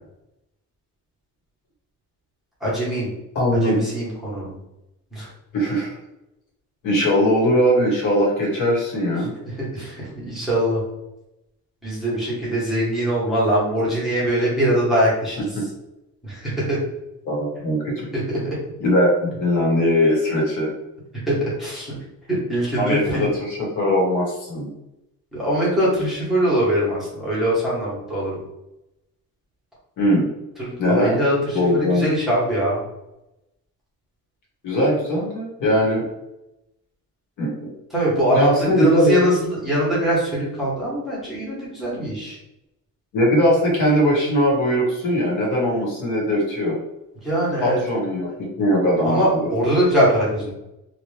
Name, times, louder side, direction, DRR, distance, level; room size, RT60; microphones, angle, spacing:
voice 1, 2.6-3.1 3.6-4.5 5.1-5.3 9.6-10.8 11.8-15.5 16.2-16.8 18.1-18.6 21.3-21.9 22.3-23.3 25.3-28.3 30.6-31.3 31.7-32.8 37.9-38.5 38.8-42.4 47.2-47.8 49.0-50.5, right 1 dB, ahead, -8 dB, 1.1 m, -22 dB
voice 2, 3.3-3.8 5.5-6.0 6.8-9.3 15.5-15.6 17.2-18.1 18.8-20.7 22.8-24.7 30.0-30.3 30.8-31.2 31.5-32.1 34.6-36.0 37.4-37.7 38.3-39.3 43.1-46.7 47.6-49.5, equal, 65° left, -3 dB, 1.4 m, -20 dB
2.9 x 2.5 x 3.2 m, 0.91 s
cardioid pair, 165°, 33 cm